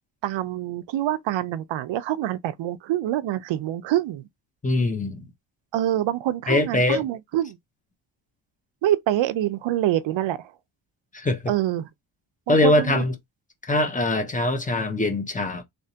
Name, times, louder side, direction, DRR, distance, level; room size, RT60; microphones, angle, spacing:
voice 1, 0.2-4.3 5.7-7.6 8.8-10.5 11.5-11.9 12.5-13.0, right 13 dB, 80° right, 0.6 m, -26 dB
voice 2, 4.6-5.3 6.5-7.0 11.1-11.4 12.5-13.1 13.6-15.6, left 2 dB, 15° left, 0.8 m, -22 dB
3.3 x 2.9 x 2.8 m
cardioid pair, 130°, 45 cm